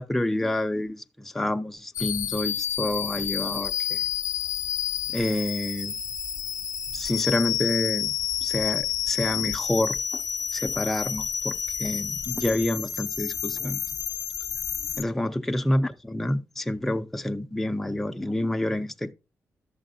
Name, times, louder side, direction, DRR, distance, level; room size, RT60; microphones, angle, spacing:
voice 1, 0.0-4.0 5.1-6.0 6.9-8.1 8.4-10.2 10.5-11.5 11.8-13.8 15.0-19.1, left 1 dB, 5° left, 0.4 m, -28 dB
sound 1, 1.9-15.0, left 9 dB, 70° left, 0.5 m, -30 dB
11.5 x 7.2 x 2.6 m
wide cardioid pair, 160°, 6 cm